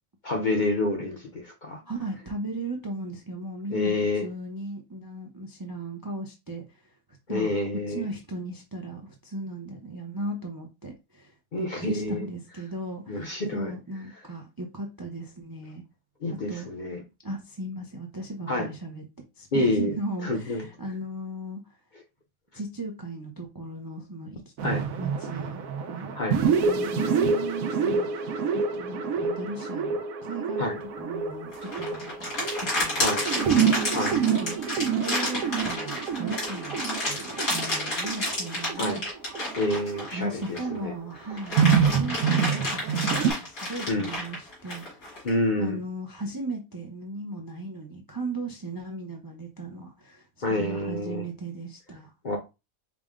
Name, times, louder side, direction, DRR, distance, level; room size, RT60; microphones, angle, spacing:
voice 1, 0.2-1.8 3.7-4.3 7.3-8.1 11.5-12.3 13.1-13.7 16.2-17.0 18.5-18.7 19.5-20.0 20.2-20.7 24.6-24.8 26.1-26.4 30.6-30.8 33.0-33.2 33.9-34.2 38.8-39.0 39.6-40.9 43.9-44.1 45.2-45.8 50.4-51.3 52.2-52.4, left 2 dB, 45° left, 0.7 m, -28 dB
voice 2, 1.9-4.0 4.2-6.6 7.3-15.8 16.3-16.7 17.2-19.1 19.4-21.6 22.5-26.1 26.4-32.3 32.8-33.1 33.4-33.9 34.3-34.6 35.0-39.0 40.1-41.5 41.9-44.8 45.6-52.1, right 2 dB, 30° right, 0.4 m, -37 dB
sound 1, 24.6-40.9 41.3-43.3, right 6 dB, 80° right, 1.1 m, -27 dB
sound 2, 31.5-40.8 41.2-45.3, left 1 dB, 80° left, 2.6 m, -30 dB
5.0 x 2.0 x 3.6 m
omnidirectional pair, 1.5 m